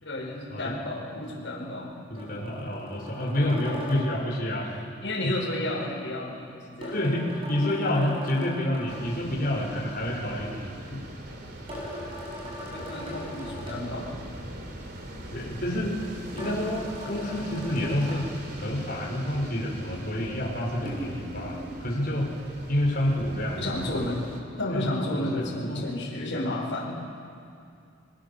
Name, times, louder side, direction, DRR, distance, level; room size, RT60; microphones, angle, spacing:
voice 1, 0.0-1.9 5.0-7.1 12.7-14.1 23.6-27.0, left 1 dB, 65° left, -4 dB, 5.7 m, -32 dB
voice 2, 2.1-4.9 6.9-11.0 12.0-12.1 15.3-15.9 16.3-22.3 22.7-23.7 24.7-25.3 25.7-25.9, left 1 dB, 45° left, -2 dB, 5.9 m, -28 dB
sound 1, 2.2-4.1 6.8-9.0 11.7-13.8 16.4-18.2 20.9-21.7, equal, 25° right, 7.1 m, -39 dB
sound 2, 8.9-24.4, right 1 dB, 50° right, 3.2 m, -42 dB
29.5 x 22.5 x 7.3 m, 2.4 s
head